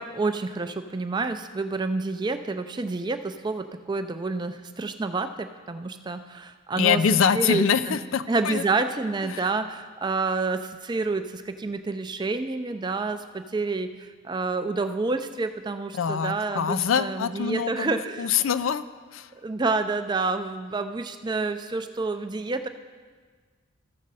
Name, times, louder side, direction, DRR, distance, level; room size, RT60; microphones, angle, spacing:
voice 1, 0.0-7.0 7.3-8.0 8.3-18.3 19.3-22.7, right 3 dB, 20° right, 9 dB, 0.4 m, -28 dB
voice 2, 6.7-8.6 9.2-9.4 15.9-18.9 19.1-19.3, left 7 dB, 75° left, 14 dB, 0.4 m, -24 dB
14.5 x 6.4 x 4.1 m, 1.5 s
head